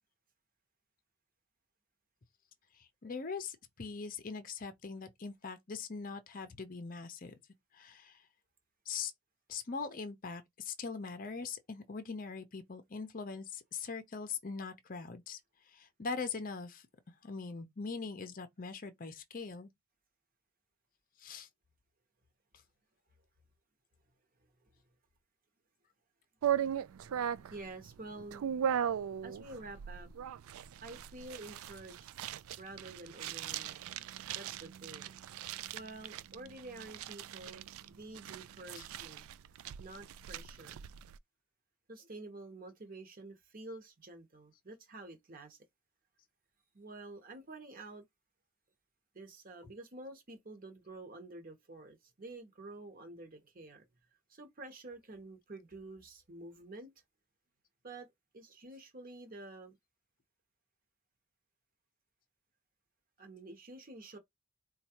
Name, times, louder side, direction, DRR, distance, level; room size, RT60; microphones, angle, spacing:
voice 1, 2.7-7.3 7.7-8.2 8.9-9.1 9.5-15.4 15.7-16.9 17.2-19.7 21.2-21.5 38.8-38.9, left 5 dB, 40° left, 0.6 m, -42 dB
sound 1, 26.4-41.2, right 9 dB, 70° right, 0.3 m, -38 dB
voice 2, 26.7-28.6 29.2-30.1 30.8-32.2 32.6-33.9 34.3-35.2 35.7-39.2 39.8-40.8 41.9-45.6 46.7-48.0 49.1-53.8 54.3-56.9 57.8-59.8 63.2-64.2, right 2 dB, 40° right, 0.9 m, -49 dB
4.3 x 2.3 x 2.9 m
head